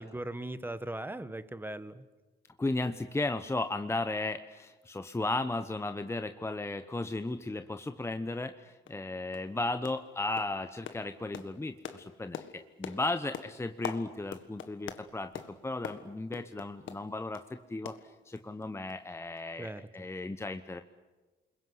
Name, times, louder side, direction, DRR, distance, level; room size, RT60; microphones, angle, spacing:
voice 1, 0.0-2.0 19.6-20.1, right 1 dB, 10° right, 13 dB, 1.4 m, -39 dB
voice 2, 2.6-18.0 18.3-20.8, left 2 dB, 15° left, 9 dB, 1.0 m, -35 dB
sound 1, 8.3-8.4 8.9-9.0 9.3-9.5 9.8-10.1 10.4-17.5 17.9-18.6 18.9-19.0 19.4-19.5, left 9 dB, 75° left, 1.7 m, -44 dB
29.5 x 21.5 x 8.0 m, 1.2 s
cardioid pair, 90°, 20 cm